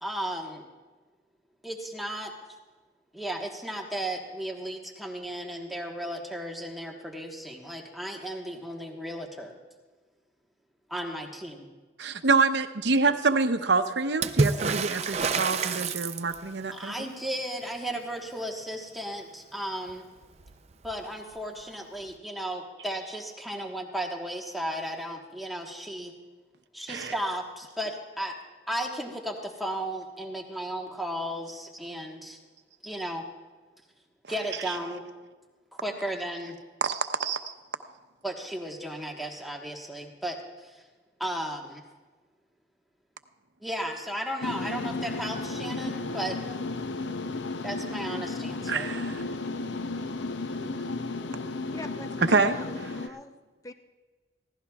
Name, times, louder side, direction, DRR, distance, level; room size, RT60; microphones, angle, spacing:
voice 1, 0.0-0.6 1.6-2.3 3.1-9.5 10.9-11.6 16.7-20.1 20.8-26.1 26.7-28.4 28.7-32.4 32.8-33.2 34.3-35.0 35.8-36.6 38.2-40.8 41.2-41.8 43.6-46.4 47.6-48.9, right 1 dB, ahead, 0 dB, 1.3 m, -35 dB
voice 2, 12.0-17.1 26.9-27.1 34.7-34.8 36.8-37.5 48.7-49.2 52.2-52.9, right 4 dB, 70° right, 8 dB, 0.8 m, -26 dB
Water / Splash splatter, 14.2-16.6 19.9-20.0 20.2-21.0 22.1-22.2, right 4 dB, 35° right, 0.5 m, -28 dB
sound 1, 44.4-53.1, left 3 dB, 90° left, 0.6 m, -34 dB
voice 3, 51.7-53.3 53.6-53.7, left 2 dB, 20° left, 7 dB, 0.6 m, -43 dB
22.5 x 16.0 x 2.4 m, 1.3 s
head